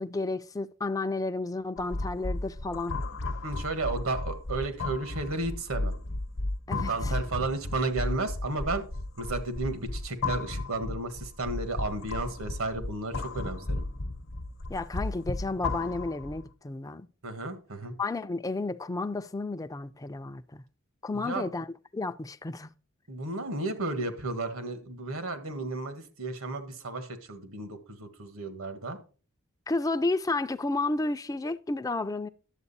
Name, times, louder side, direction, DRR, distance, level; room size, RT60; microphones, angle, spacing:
voice 1, 0.0-3.0 6.7-7.1 14.7-17.1 18.0-20.6 21.0-22.7 29.7-32.3, left 2 dB, 15° left, 0.4 m, -32 dB
sound 1, 1.8-16.5, left 2 dB, 60° left, 0.9 m, -34 dB
voice 2, 3.4-6.0 6.8-8.8 9.2-13.8 17.2-17.9 21.2-21.5 23.1-29.0, right 2 dB, 80° right, 1.6 m, -33 dB
11.0 x 7.7 x 4.1 m
head